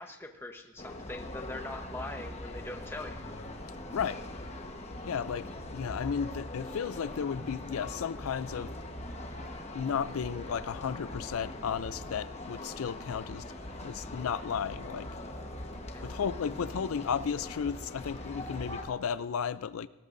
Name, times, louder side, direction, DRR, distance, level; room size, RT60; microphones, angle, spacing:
voice 1, 0.0-3.2 15.9-16.3, left 2 dB, 10° left, 1.0 m, -42 dB
sound 1, 0.8-18.9, left 1 dB, 30° left, 1.2 m, -42 dB
voice 2, 5.0-8.7 9.7-13.4 13.7-15.1 16.0-19.9, left 7 dB, 80° left, 0.4 m, -34 dB
19.5 x 18.0 x 2.6 m
head